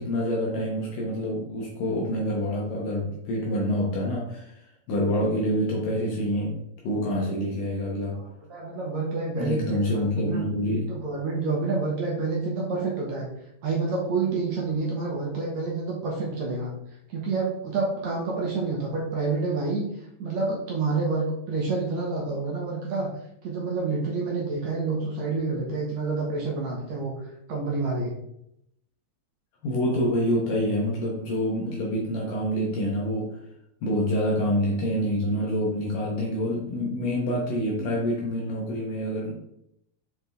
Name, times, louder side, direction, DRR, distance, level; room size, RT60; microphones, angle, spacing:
voice 1, 0.0-6.6 6.8-8.2 9.4-10.9 29.6-33.4 33.8-39.3, equal, 65° left, -3 dB, 2.4 m, -27 dB
voice 2, 8.5-10.5 10.9-13.3 13.6-16.7 17.1-19.8 20.2-23.1 23.4-27.1 27.5-28.1, right 3 dB, 60° right, -2 dB, 2.0 m, -28 dB
7.9 x 4.6 x 3.5 m, 0.76 s
omnidirectional pair, 4.6 m